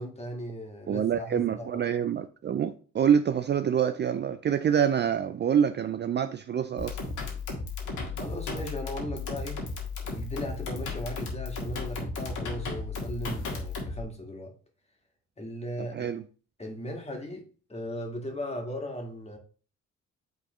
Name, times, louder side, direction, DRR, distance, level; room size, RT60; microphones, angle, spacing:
voice 1, 0.0-1.8 8.1-9.6 10.1-14.5 15.4-16.2 16.6-19.4, equal, 20° left, 1.7 m, -37 dB
voice 2, 0.9-7.0 15.8-16.2, right 8 dB, 35° right, 0.4 m, -26 dB
sound 1, 6.8-14.0, left 3 dB, 80° left, 1.8 m, -35 dB
8.9 x 3.8 x 3.1 m
cardioid pair, 90°, 30 cm